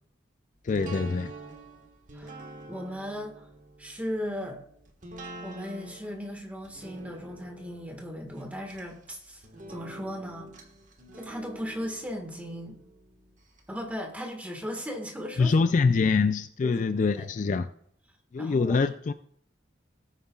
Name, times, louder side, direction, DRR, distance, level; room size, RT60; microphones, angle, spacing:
voice 1, 0.6-1.3 15.4-17.7 18.3-19.1, left 4 dB, 40° left, 0.3 m, -24 dB
sound 1, 0.7-13.6 14.0-14.1, right 2 dB, 40° right, 1.5 m, -46 dB
voice 2, 2.1-3.4 3.8-4.6 5.4-9.4 9.7-10.5 11.1-12.8 13.7-15.6 16.6-17.6 18.4-18.8, equal, 10° right, 1.6 m, -37 dB
18.5 x 9.1 x 2.4 m
head